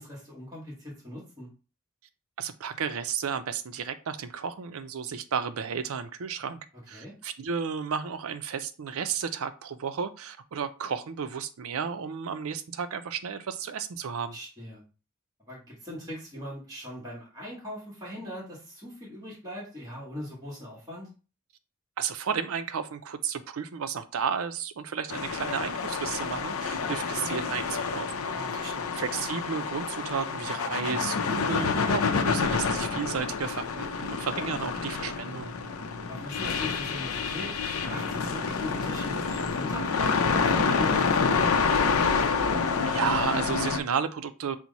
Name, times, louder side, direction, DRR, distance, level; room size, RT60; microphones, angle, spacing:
voice 1, 0.0-1.5 6.9-7.1 14.3-14.8 15.4-21.1 28.3-28.9 36.0-42.0, left 1 dB, 15° right, -3 dB, 1.5 m, -40 dB
voice 2, 2.4-14.4 22.0-28.3 28.5-35.5 42.9-44.6, right 6 dB, 80° right, 11 dB, 0.5 m, -33 dB
sound 1, 25.1-43.8, left 5 dB, 85° left, 0.5 m, -28 dB
6.0 x 2.1 x 4.0 m, 0.34 s
head